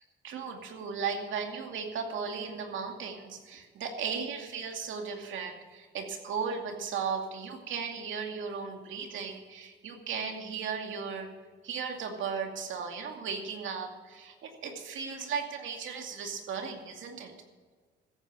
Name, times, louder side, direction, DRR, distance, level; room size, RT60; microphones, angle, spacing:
voice 1, 0.2-11.3 11.6-17.3, right 6 dB, 75° right, 3 dB, 2.4 m, -36 dB
15.0 x 9.1 x 6.3 m, 1.5 s
cardioid pair, 90°, 20 cm